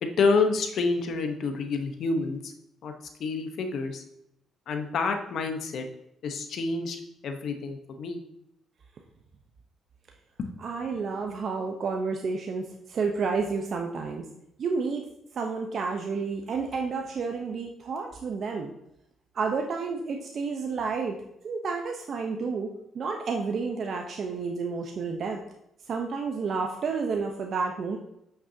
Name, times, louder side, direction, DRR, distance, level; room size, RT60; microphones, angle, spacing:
voice 1, 0.0-2.5 2.8-2.9 3.2-4.0 4.7-5.9 6.2-8.2 10.4-10.5, left 4 dB, 65° left, 6 dB, 1.0 m, -28 dB
voice 2, 10.6-14.2 14.6-15.0 15.3-18.7 19.3-21.2 21.4-22.7 22.9-25.4 25.9-28.0, right 4 dB, 55° right, 2 dB, 0.8 m, -30 dB
8.2 x 6.0 x 2.8 m, 0.78 s
cardioid pair, 90°, 0 cm